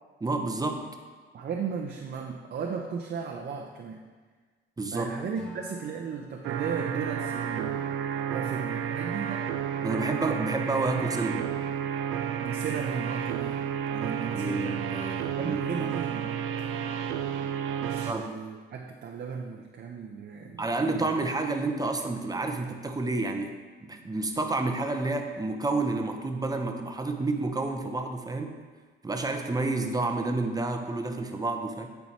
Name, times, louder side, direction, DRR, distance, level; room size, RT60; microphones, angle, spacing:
voice 1, 0.2-0.9 4.8-5.2 9.8-11.5 14.2-15.9 18.1-18.2 20.6-28.6 29.0-31.9, right 3 dB, 20° right, 5 dB, 0.8 m, -30 dB
voice 2, 1.3-4.0 4.9-7.8 8.3-9.5 12.4-13.6 13.9-14.6 15.4-16.7 17.8-21.1, right 6 dB, 55° right, 0 dB, 0.7 m, -36 dB
Acoustic guitar / Strum, 5.4-8.5, right 2 dB, 5° left, 2.0 m, -50 dB
sound 1, 6.4-18.1, right 8 dB, 90° right, 0.5 m, -31 dB
8.9 x 4.6 x 4.2 m, 1.4 s
cardioid pair, 90°, 20 cm